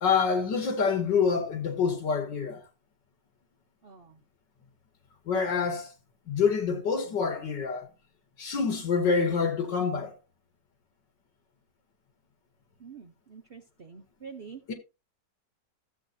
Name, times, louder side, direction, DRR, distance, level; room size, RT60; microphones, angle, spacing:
voice 1, 0.0-2.6 5.3-5.9 6.3-7.9 8.4-10.1 14.7-14.8, left 5 dB, 85° left, 2.5 m, -26 dB
voice 2, 3.8-4.2 12.8-14.6, right 6 dB, 50° right, 0.7 m, -46 dB
14.0 x 8.0 x 2.7 m
omnidirectional pair, 1.9 m